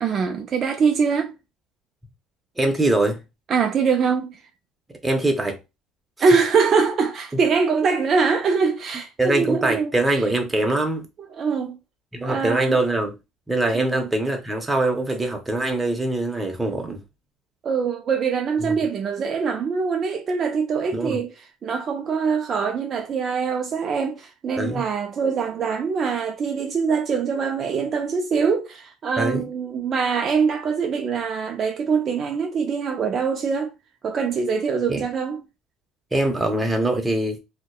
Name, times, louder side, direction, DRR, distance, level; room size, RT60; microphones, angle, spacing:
voice 1, 0.0-1.3 3.5-4.4 6.2-10.2 11.4-11.8 12.2-12.8 13.7-14.1 17.6-33.7 34.0-35.4, right 5 dB, 45° right, 0.4 m, -23 dB
voice 2, 2.6-3.2 5.0-5.6 9.2-11.1 12.1-13.1 13.5-17.0 18.6-18.8 20.9-21.2 24.6-24.9 29.2-29.5 34.9-35.0 36.1-37.4, right 2 dB, 15° right, 0.7 m, -23 dB
2.6 x 2.1 x 2.2 m
supercardioid pair, 90°, 0 cm